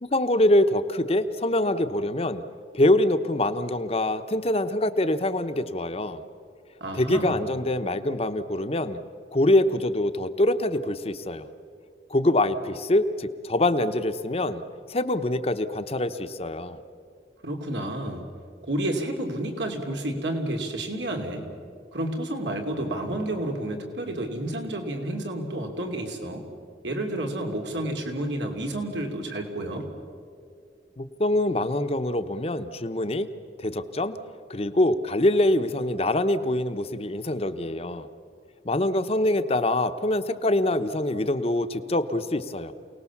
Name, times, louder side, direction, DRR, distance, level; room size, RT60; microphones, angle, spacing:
voice 1, 0.0-2.4 2.7-6.2 6.9-9.0 9.3-11.5 12.1-14.6 14.9-16.8 31.0-33.3 33.6-34.2 34.5-38.1 38.6-42.7, left 1 dB, 35° left, 10 dB, 0.9 m, -24 dB
voice 2, 6.8-7.4 17.4-18.3 18.6-21.5 21.9-26.4 26.8-29.9, right 1 dB, 85° right, 3 dB, 3.0 m, -30 dB
28.0 x 19.0 x 7.2 m, 2.3 s
head